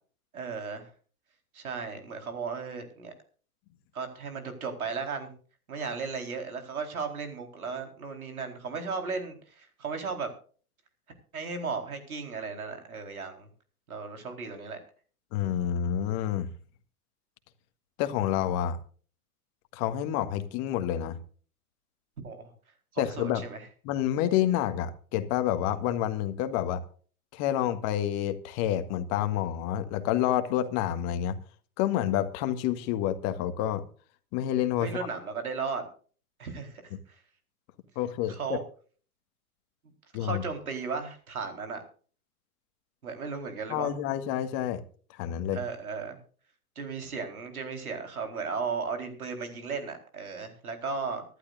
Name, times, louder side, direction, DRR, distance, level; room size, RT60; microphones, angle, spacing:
voice 1, 0.3-0.9 1.5-3.1 3.9-5.3 5.7-10.3 11.3-13.5 13.9-14.8 22.2-22.5 22.9-23.6 34.8-35.8 36.4-37.2 38.3-38.6 40.2-41.8 43.0-43.9 45.5-46.2 46.8-51.2, right 5 dB, 75° right, 4.3 m, -35 dB
voice 2, 15.3-16.5 18.0-18.8 19.7-21.2 23.0-23.4 23.8-26.8 27.3-31.4 31.8-33.8 34.3-34.9 38.0-38.6 40.1-40.4 43.7-44.8 45.1-45.6, left 11 dB, 35° left, 1.7 m, -28 dB
25.0 x 11.5 x 2.6 m
figure-of-eight pair, 105°, 44 cm